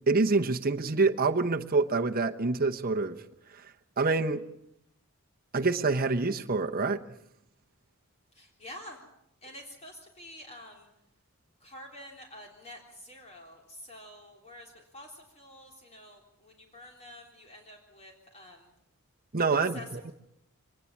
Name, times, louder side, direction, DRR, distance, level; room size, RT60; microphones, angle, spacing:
voice 1, 0.1-3.2 4.0-4.4 5.5-7.0 19.3-20.1, right 3 dB, 40° right, 5 dB, 1.0 m, -26 dB
voice 2, 8.3-9.0 9.4-10.9 11.6-18.7 19.7-19.9, left 1 dB, 30° left, 1 dB, 3.5 m, -48 dB
24.0 x 19.5 x 7.3 m, 0.78 s
head